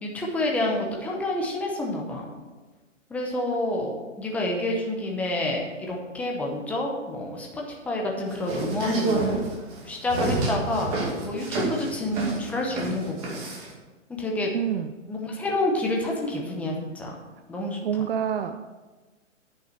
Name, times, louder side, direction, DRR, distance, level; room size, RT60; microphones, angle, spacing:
voice 1, 0.0-2.3 3.1-9.4 9.8-13.4 14.2-14.5 15.1-17.2 17.5-17.8, left 1 dB, 5° left, -1 dB, 0.8 m, -28 dB
sound 1, 8.3-13.7, right 3 dB, 30° right, 2.3 m, -28 dB
voice 2, 14.5-14.9 17.8-18.7, right 9 dB, 50° right, 9 dB, 0.5 m, -27 dB
9.6 x 5.6 x 6.6 m, 1.3 s
hypercardioid pair, 150°, 38 cm